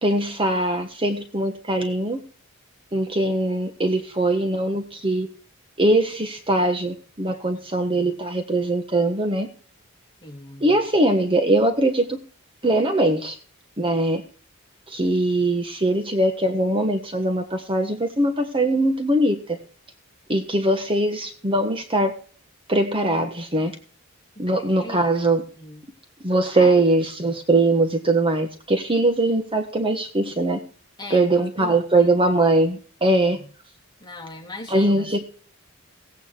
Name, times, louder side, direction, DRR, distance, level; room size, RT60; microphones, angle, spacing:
voice 1, 0.0-2.2 2.9-5.3 5.8-9.5 10.6-12.2 12.6-13.3 13.8-14.2 14.9-19.6 20.3-22.1 22.7-23.7 24.4-25.4 26.2-30.6 31.1-33.4 34.7-35.2, right 2 dB, 25° right, 5 dB, 1.4 m, -21 dB
voice 2, 7.7-8.2 10.2-10.8 24.4-25.1 25.5-25.8 26.5-26.7 31.0-32.1 33.1-33.5 34.0-35.2, left 2 dB, 20° left, 0 dB, 2.9 m, -40 dB
17.0 x 9.2 x 4.7 m, 0.42 s
head